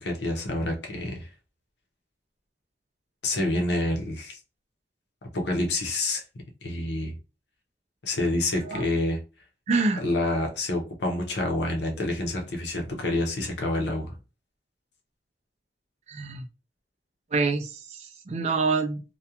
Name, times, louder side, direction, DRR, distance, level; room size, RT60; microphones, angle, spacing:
voice 1, 0.0-1.3 3.2-4.4 5.3-6.2 6.6-7.2 8.0-9.2 10.0-14.2, left 1 dB, 75° left, 0.7 m, -28 dB
voice 2, 9.7-10.0 16.1-16.4 17.3-19.0, right 4 dB, 40° right, 0.3 m, -26 dB
2.4 x 2.2 x 2.8 m
head